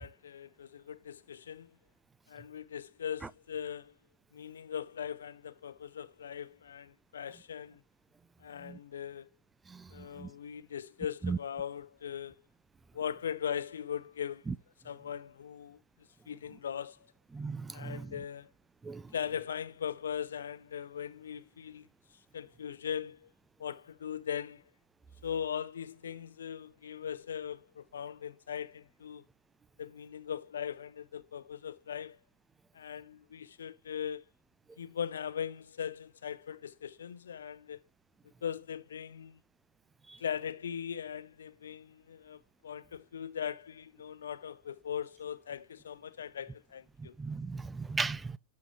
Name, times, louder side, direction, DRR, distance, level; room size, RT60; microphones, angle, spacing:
voice 1, 0.0-1.7 2.3-3.9 4.3-7.8 8.4-9.3 9.9-12.4 12.9-14.5 14.8-15.8 16.3-17.0 17.7-18.5 19.1-21.9 22.3-23.3 23.6-24.6 25.2-29.2 29.8-32.2 32.7-34.3 34.8-37.8 38.4-39.4 40.2-47.1, left 8 dB, 65° left, 0.7 m, -39 dB
voice 2, 9.7-10.3 11.2-11.4 14.5-14.6 17.3-18.1 18.8-19.1 40.1-40.2 47.0-48.4, right 4 dB, 10° right, 0.4 m, -37 dB
12.0 x 4.8 x 3.1 m
figure-of-eight pair, 90°, 0 cm